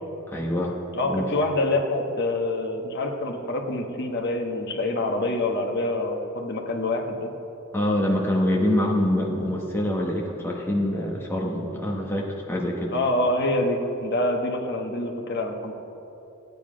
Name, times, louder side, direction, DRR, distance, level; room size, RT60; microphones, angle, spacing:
voice 1, 0.3-0.8 1.0-1.3 7.7-12.9, left 1 dB, 10° left, -2 dB, 1.1 m, -25 dB
voice 2, 1.0-7.3 12.9-15.7, left 2 dB, 50° left, 2 dB, 1.3 m, -26 dB
14.5 x 9.5 x 5.1 m, 2.9 s
head